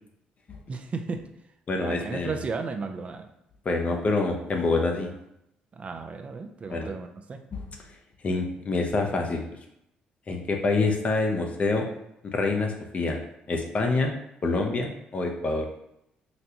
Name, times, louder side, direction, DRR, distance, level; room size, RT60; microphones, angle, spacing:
voice 1, 0.7-1.3 1.8-3.3 5.7-7.4, right 4 dB, 40° right, 7 dB, 0.4 m, -34 dB
voice 2, 1.7-2.3 3.7-5.1 6.7-6.9 7.5-7.6 8.2-9.4 10.3-11.8 12.3-13.2 13.5-14.1 14.4-15.7, left 3 dB, 40° left, 2 dB, 0.6 m, -26 dB
4.0 x 2.2 x 2.8 m, 0.80 s
supercardioid pair, 70°, 3 cm